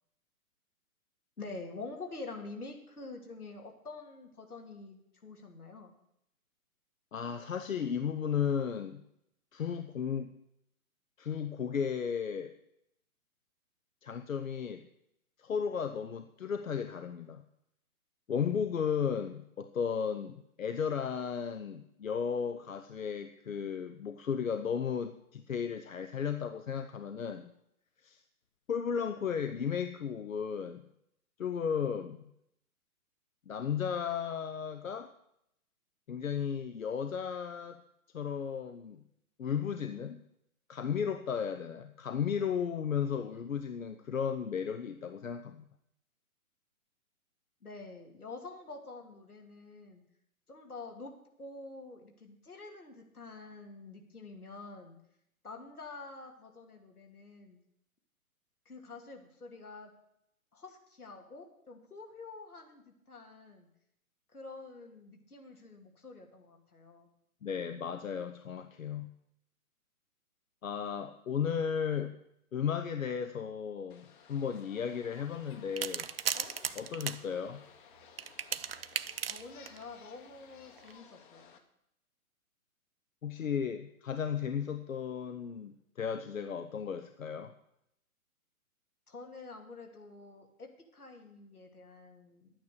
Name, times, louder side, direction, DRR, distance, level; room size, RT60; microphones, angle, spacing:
voice 1, 1.4-5.9 47.6-50.0 50.5-51.1 51.4-55.0 55.4-57.6 58.7-59.9 60.5-63.7 64.3-67.1 79.3-81.5 89.1-92.5, left 3 dB, 80° left, 2 dB, 2.7 m, -47 dB
voice 2, 7.1-9.0 9.5-10.3 11.2-12.5 14.0-14.8 15.4-17.4 18.3-27.5 28.0-28.2 28.7-30.8 31.4-32.2 33.5-35.1 36.1-37.8 38.1-39.0 39.4-40.2 40.7-45.7 67.4-69.1 70.6-72.1 72.5-76.1 76.7-77.6 83.2-87.5, left 7 dB, 65° left, 8 dB, 0.9 m, -34 dB
sound 1, 73.9-81.6, left 7 dB, 35° left, 1.3 m, -56 dB
sound 2, 75.8-77.2 78.2-79.8 80.8-80.9, right 8 dB, 45° right, 0.4 m, -36 dB
11.0 x 9.3 x 6.6 m, 0.76 s
figure-of-eight pair, 125°, 44 cm